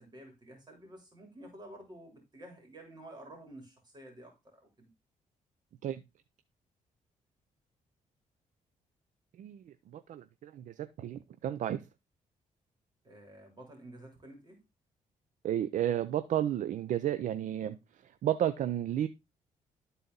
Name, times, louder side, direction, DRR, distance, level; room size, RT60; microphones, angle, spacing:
voice 1, 0.0-4.9 13.0-14.6, right 1 dB, 30° right, 3.3 m, -51 dB
voice 2, 9.4-11.9 15.4-19.1, right 11 dB, 70° right, 0.5 m, -33 dB
12.0 x 4.2 x 3.9 m
cardioid pair, 95°, 14 cm